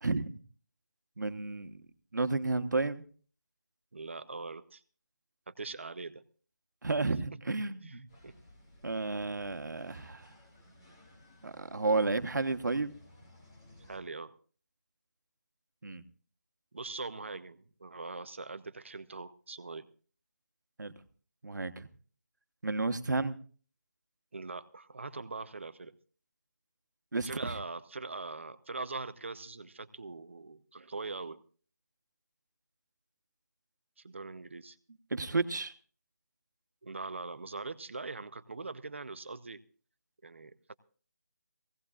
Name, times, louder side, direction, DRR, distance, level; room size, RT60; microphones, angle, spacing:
voice 1, 0.0-0.4 1.2-1.8 2.1-3.0 6.8-8.1 8.8-10.3 11.4-12.9 15.8-16.0 20.8-20.9 21.4-21.9 22.6-23.4 27.1-27.6 35.1-35.7, right 3 dB, 85° right, 10 dB, 1.2 m, -32 dB
voice 2, 3.9-4.8 5.5-6.2 7.8-8.0 8.2-8.4 13.9-14.3 16.7-19.9 24.3-26.0 27.2-31.4 34.0-34.8 36.8-39.6 40.2-40.7, right 3 dB, 40° right, 12 dB, 0.7 m, -42 dB
sound 1, 8.1-14.0, left 1 dB, 10° left, 1.1 m, -58 dB
20.0 x 17.0 x 2.4 m, 0.41 s
figure-of-eight pair, 180°, 10 cm